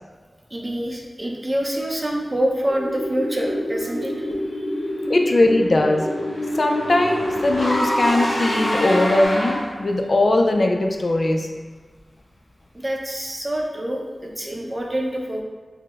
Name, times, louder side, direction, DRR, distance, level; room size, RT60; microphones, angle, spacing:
voice 1, 0.5-4.6 12.7-15.4, right 1 dB, 30° right, -1 dB, 0.5 m, -26 dB
sound 1, 2.7-9.3, equal, 30° left, 0.8 m, -28 dB
Car / Engine, 4.9-9.9, equal, 90° left, 0.7 m, -27 dB
voice 2, 5.1-6.1 6.6-11.5, left 2 dB, 60° left, 2 dB, 0.3 m, -19 dB
4.8 x 2.0 x 2.3 m, 1.4 s
cardioid pair, 45°, 0 cm